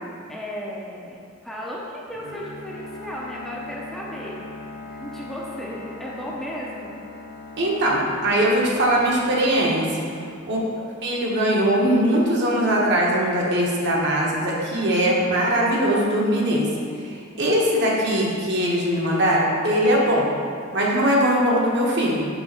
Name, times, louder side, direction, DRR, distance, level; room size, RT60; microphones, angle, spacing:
voice 1, 0.3-7.0 10.1-10.6 14.7-15.0 17.3-17.5, equal, ahead, -5 dB, 0.6 m, -36 dB
Bowed string instrument, 2.1-10.3, left 2 dB, 40° left, 0.9 m, -40 dB
voice 2, 7.6-10.0 10.5-10.6 11.0-16.7 17.0-20.3 20.7-22.3, equal, 55° right, -3 dB, 1.2 m, -21 dB
5.4 x 4.0 x 6.0 m, 2.3 s
head